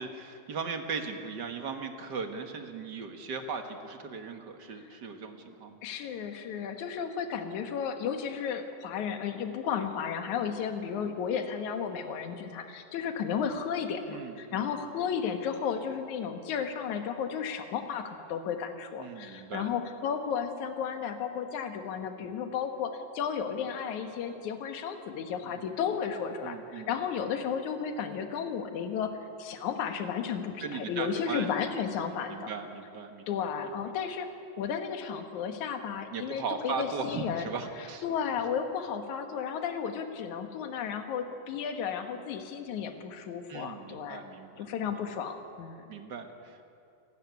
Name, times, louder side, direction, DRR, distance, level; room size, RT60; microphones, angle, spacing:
voice 1, 0.0-5.8 14.1-14.7 19.0-19.7 22.2-22.3 25.4-25.6 26.4-26.9 30.6-31.5 32.0-33.7 36.1-38.0 43.5-44.7 45.9-46.6, right 5 dB, 45° right, 6 dB, 1.7 m, -38 dB
voice 2, 5.8-29.1 29.4-32.5 33.3-34.3 34.6-37.5 38.0-44.2 44.6-45.8, left 7 dB, 75° left, 6 dB, 2.8 m, -33 dB
29.0 x 12.5 x 9.5 m, 2.6 s
omnidirectional pair, 3.5 m